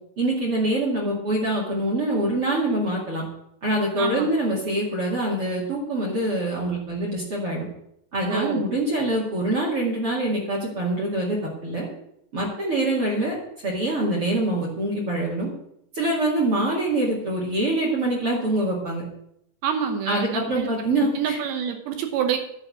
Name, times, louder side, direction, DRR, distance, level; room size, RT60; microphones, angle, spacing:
voice 1, 0.2-3.2 3.6-7.7 8.1-11.9 12.3-13.3 13.6-15.5 15.9-19.0 20.1-21.4, right 1 dB, 40° right, -2 dB, 2.1 m, -24 dB
voice 2, 4.0-4.3 8.3-8.7 19.6-20.7 21.2-22.4, right 8 dB, 70° right, 6 dB, 2.6 m, -27 dB
10.5 x 4.9 x 8.1 m, 0.74 s
omnidirectional pair, 5.2 m